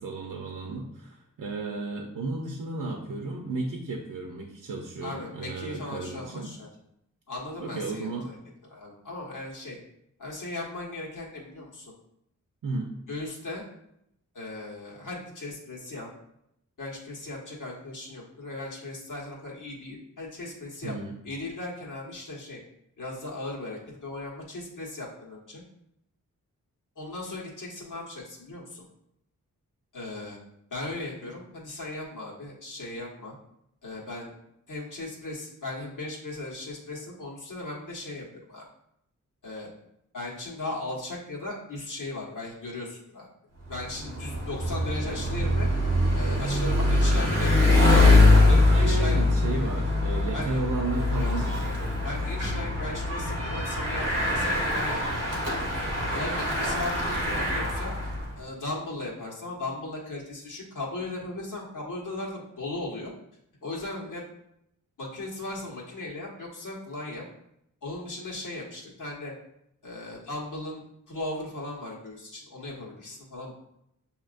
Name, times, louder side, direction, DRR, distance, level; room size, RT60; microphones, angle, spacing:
voice 1, 0.0-6.5 7.6-8.3 12.6-12.9 20.8-21.2 48.5-52.0 52.4-52.7, right 3 dB, 90° right, 1 dB, 0.7 m, -33 dB
voice 2, 5.0-6.7 7.3-8.4 8.7-9.8 10.2-11.9 13.1-13.6 14.3-16.1 16.8-20.9 21.2-22.6 23.0-25.6 26.9-28.8 29.9-30.4 30.7-33.3 33.8-34.3 34.7-38.6 39.4-39.7 40.1-43.3 43.7-45.7 46.1-49.2 50.3-50.6 51.2-51.7 52.0-55.5 56.1-57.9 58.4-63.1 63.6-64.2 65.0-67.3 67.8-69.3 69.8-73.5, left 2 dB, 70° left, -4 dB, 1.4 m, -37 dB
Bicycle, 43.7-58.3, left 2 dB, 50° right, 1.3 m, -23 dB
7.2 x 2.8 x 2.5 m, 0.77 s
wide cardioid pair, 155°, 32 cm